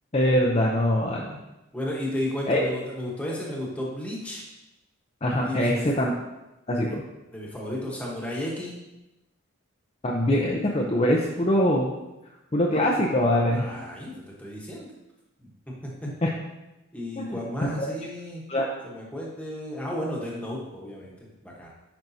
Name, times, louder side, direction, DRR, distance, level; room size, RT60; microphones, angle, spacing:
voice 1, 0.1-1.4 2.5-2.6 5.2-6.1 6.7-7.0 10.0-11.9 12.5-13.7 16.2-16.3 17.2-17.3 17.6-17.9 18.5-18.7, left 1 dB, 30° left, -2 dB, 0.5 m, -23 dB
voice 2, 1.7-4.4 5.4-5.9 7.3-8.7 13.5-14.9 15.4-16.1 16.9-18.4 18.8-21.7, left 1 dB, 5° left, -3 dB, 1.1 m, -33 dB
8.9 x 5.2 x 2.8 m, 0.97 s
head